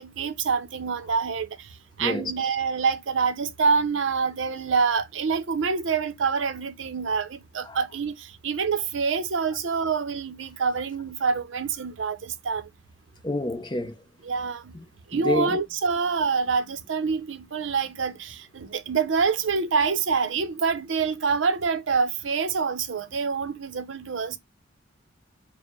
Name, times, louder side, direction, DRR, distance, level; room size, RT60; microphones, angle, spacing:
voice 1, 0.0-12.7 14.2-14.7 15.1-24.4, right 5 dB, 80° right, 0.6 m, -26 dB
voice 2, 2.0-2.3 7.7-7.8 13.2-14.0 14.7-14.8 15.1-15.6, left 1 dB, 25° left, 0.6 m, -28 dB
4.5 x 2.1 x 4.4 m
head